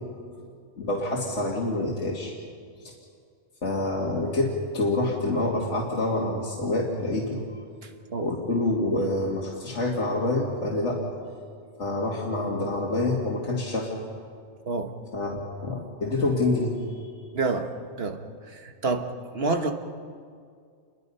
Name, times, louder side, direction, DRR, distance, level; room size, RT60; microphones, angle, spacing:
voice 1, 0.8-2.3 2.8-2.9 3.6-7.6 8.2-11.0 11.8-14.0 15.1-17.1, left 2 dB, 85° left, -3 dB, 2.5 m, -27 dB
voice 2, 17.3-17.7 18.0-18.2 18.5-19.1 19.3-19.7, right 3 dB, 60° right, 6 dB, 1.6 m, -27 dB
28.5 x 22.0 x 5.5 m, 2.1 s
omnidirectional pair, 1.2 m